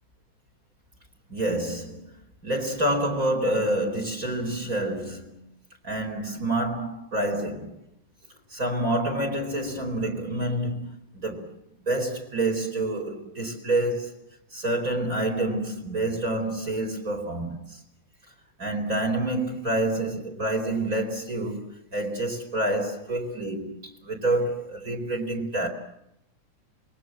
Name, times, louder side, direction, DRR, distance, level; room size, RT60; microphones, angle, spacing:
voice 1, 1.3-2.1 2.4-5.4 5.8-7.8 8.5-11.5 11.8-14.2 14.5-17.8 18.6-25.7, right 1 dB, 25° right, 4.6 m, -28 dB
27.5 x 22.5 x 7.6 m
omnidirectional pair, 3.5 m